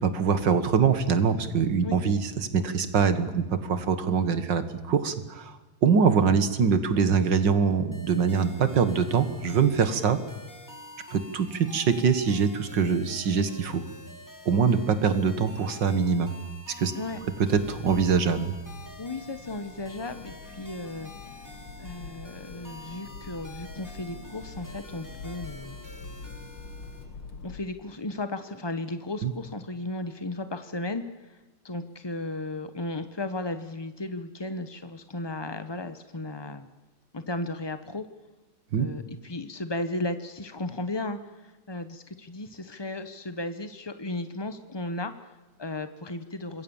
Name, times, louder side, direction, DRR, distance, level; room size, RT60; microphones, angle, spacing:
voice 1, 0.0-10.2 11.1-13.9 14.5-16.3 16.8-16.9 17.5-18.6 29.2-29.3 38.7-38.9, right 6 dB, 60° right, 11 dB, 2.2 m, -24 dB
sound 1, 7.9-27.0, left 1 dB, 10° left, 3.2 m, -48 dB
Accelerating revving vroom, 17.1-27.6, left 4 dB, 90° left, 2.4 m, -45 dB
voice 2, 19.0-21.1 21.8-25.8 27.4-36.7 37.1-38.1 38.7-46.6, left 2 dB, 30° left, 10 dB, 0.5 m, -35 dB
26.5 x 21.5 x 7.2 m, 1.2 s
omnidirectional pair, 2.3 m